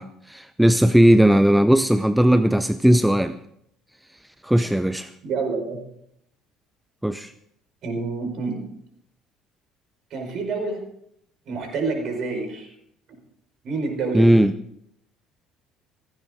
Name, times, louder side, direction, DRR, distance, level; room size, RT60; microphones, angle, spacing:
voice 1, 0.0-3.4 4.4-5.1 7.0-7.3 14.1-14.5, equal, 5° right, 11 dB, 0.7 m, -17 dB
voice 2, 5.2-5.8 7.8-8.6 10.1-10.8 11.5-12.7 13.6-14.3, right 4 dB, 50° right, 3 dB, 5.0 m, -28 dB
16.5 x 16.0 x 3.7 m, 0.73 s
figure-of-eight pair, 55°, 0 cm